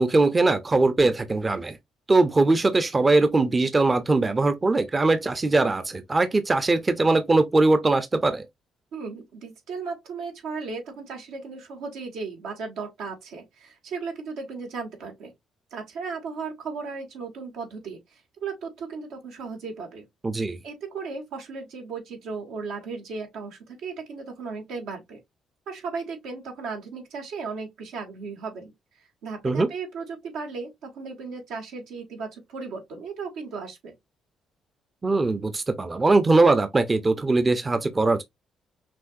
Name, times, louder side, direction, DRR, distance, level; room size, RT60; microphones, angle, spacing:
voice 1, 0.0-1.8 2.1-8.4 20.2-20.6 29.4-29.7 35.0-38.2, right 3 dB, 25° right, 0.6 m, -21 dB
voice 2, 8.9-15.3 15.7-20.1 20.6-25.2 25.7-28.7 29.0-33.9, right 4 dB, 85° right, 1.7 m, -36 dB
6.0 x 2.6 x 2.5 m
cardioid pair, 90°, 0 cm